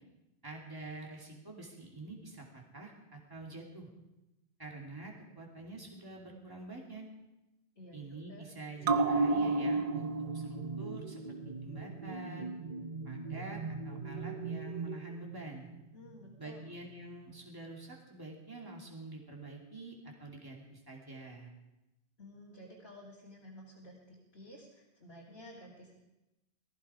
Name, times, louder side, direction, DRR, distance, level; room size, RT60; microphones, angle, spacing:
voice 1, 0.4-3.9 4.6-7.1 7.9-11.2 11.5-12.5 13.0-15.7 16.4-21.5, right 2 dB, 20° right, -2 dB, 2.7 m, -47 dB
voice 2, 7.7-8.5 15.9-16.6 22.2-25.9, left 1 dB, 65° left, -5 dB, 3.0 m, -53 dB
sound 1, 8.8-15.7 16.1-16.2, right 3 dB, 40° right, 0.7 m, -34 dB
19.5 x 15.0 x 4.9 m, 0.96 s
omnidirectional pair, 1.1 m